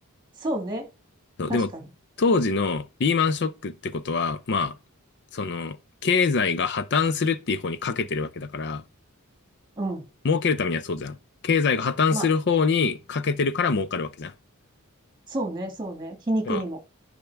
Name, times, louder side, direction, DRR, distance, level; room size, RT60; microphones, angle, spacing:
voice 1, 0.4-0.9 1.5-1.9 9.8-10.1 12.1-12.3 15.3-16.8, right 1 dB, 20° right, 1.8 m, -29 dB
voice 2, 1.4-1.7 2.2-4.8 5.3-5.8 6.0-8.8 10.2-11.2 11.4-14.3 16.5-16.6, left 5 dB, 50° left, 0.5 m, -24 dB
10.5 x 5.0 x 3.4 m
head